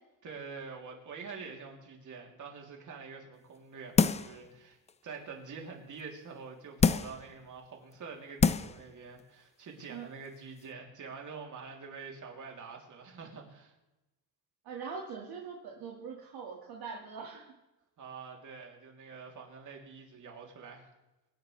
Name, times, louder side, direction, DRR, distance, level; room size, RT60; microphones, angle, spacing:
voice 1, 0.2-13.7 18.0-20.9, right 5 dB, 50° right, 1 dB, 3.3 m, -46 dB
sound 1, 4.0-4.4 4.9-5.0 6.8-7.2 7.9-8.0 8.4-8.8 9.2-9.3, left 5 dB, 20° left, 0.4 m, -26 dB
voice 2, 14.6-17.5, right 5 dB, 70° right, -1 dB, 2.1 m, -42 dB
24.5 x 10.5 x 3.4 m, 1.0 s
cardioid pair, 125°, 39 cm